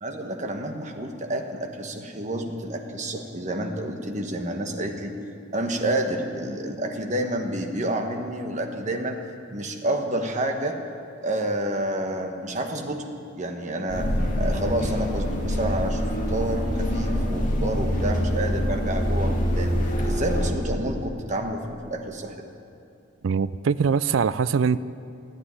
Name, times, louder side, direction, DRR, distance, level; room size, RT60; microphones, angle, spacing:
voice 1, 0.0-5.1 5.5-9.2 9.5-10.8 11.2-13.1 13.4-19.8 20.1-22.5, right 1 dB, 40° right, 4 dB, 1.3 m, -29 dB
sound 1, 13.9-20.5, equal, 40° left, 2.1 m, -25 dB
voice 2, 23.2-24.8, right 6 dB, 80° right, 16 dB, 0.4 m, -22 dB
14.5 x 9.9 x 9.7 m, 2.7 s
head